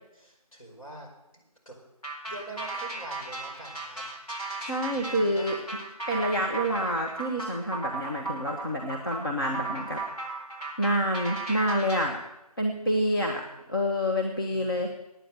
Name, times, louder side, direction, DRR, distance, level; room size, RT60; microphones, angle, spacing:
voice 1, 0.1-1.1 1.3-1.8 2.3-4.0 4.6-5.6 9.7-10.1 13.2-13.5 14.5-14.9, right 2 dB, 55° left, -1 dB, 5.0 m, -46 dB
sound 1, 2.0-12.1, right 3 dB, 70° left, 4.2 m, -36 dB
voice 2, 4.6-5.6 6.1-10.0 10.8-12.2 12.6-13.4 13.7-14.9, equal, 35° left, 0 dB, 1.1 m, -27 dB
10.0 x 9.2 x 7.8 m, 0.93 s
figure-of-eight pair, 165°, 20 cm